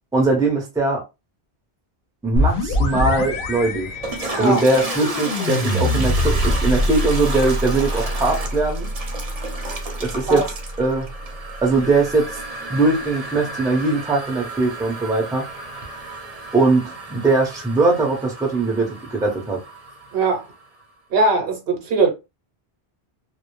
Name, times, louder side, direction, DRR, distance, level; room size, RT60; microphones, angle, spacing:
voice 1, 0.1-1.0 2.2-3.9 4.4-8.9 10.0-10.4 10.8-11.1 11.6-12.4 12.7-15.4 16.5-19.6, right 3 dB, 5° right, 0.5 m, -20 dB
sound 1, 2.4-11.9, left 1 dB, 65° left, 0.7 m, -24 dB
Toilet flush, 3.9-20.6, right 2 dB, 40° right, 0.7 m, -33 dB
voice 2, 20.1-20.5 21.1-22.1, right 3 dB, 70° right, 0.9 m, -19 dB
2.1 x 2.0 x 2.9 m
omnidirectional pair, 1.0 m